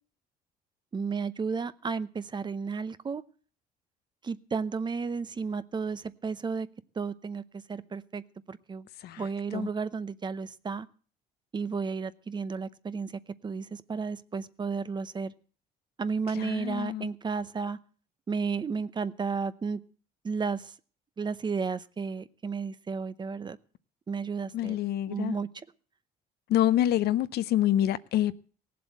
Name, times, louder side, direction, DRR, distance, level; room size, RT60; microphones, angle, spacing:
voice 1, 0.9-3.2 4.2-6.7 7.0-8.9 9.2-10.9 11.5-15.3 16.0-17.8 18.3-19.8 20.2-20.7 21.2-23.6 24.1-24.8 25.1-25.5, right 5 dB, 25° right, 0.8 m, -33 dB
voice 2, 16.4-17.1 24.5-25.4 26.5-28.3, left 12 dB, 70° left, 0.8 m, -26 dB
17.5 x 7.7 x 8.2 m
cardioid pair, 110°, 17 cm